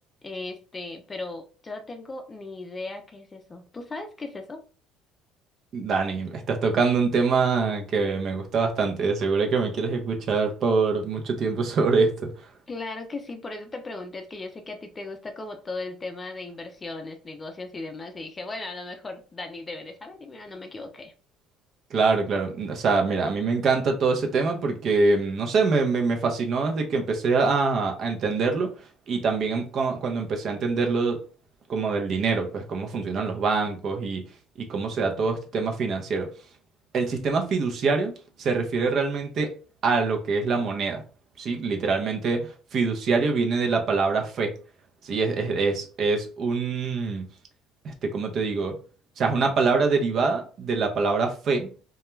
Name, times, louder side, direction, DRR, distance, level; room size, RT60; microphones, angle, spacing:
voice 1, 0.2-4.6 12.7-21.1, left 3 dB, 25° left, 5 dB, 0.5 m, -37 dB
voice 2, 5.7-12.3 21.9-28.7 29.1-31.2 31.7-34.2 34.6-36.3 36.9-38.1 38.4-39.5 39.8-41.0 41.4-42.4 42.7-44.5 45.0-47.2 47.8-48.7 49.2-51.7, right 4 dB, 50° right, 3 dB, 0.7 m, -24 dB
2.3 x 2.1 x 3.0 m, 0.37 s
supercardioid pair, 100°, 0 cm